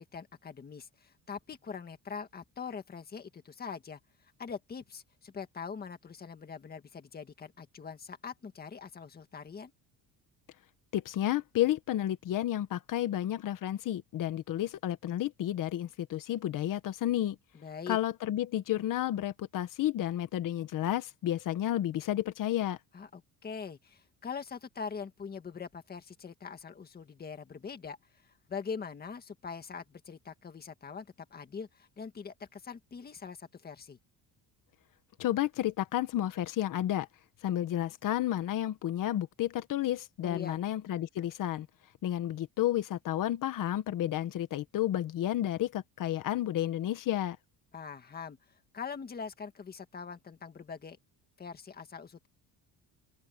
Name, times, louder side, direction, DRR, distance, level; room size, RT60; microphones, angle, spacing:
voice 1, 0.0-4.0 4.4-9.7 17.5-18.0 22.9-28.0 28.2-34.0 40.2-40.6 47.7-48.4 48.7-51.0 51.4-52.3, left 6 dB, 25° left, 1.9 m, -43 dB
voice 2, 10.9-17.4 17.9-22.8 35.2-37.1 37.4-41.7 42.0-47.4, left 12 dB, 55° left, 1.4 m, -31 dB
cardioid pair, 175°, 39 cm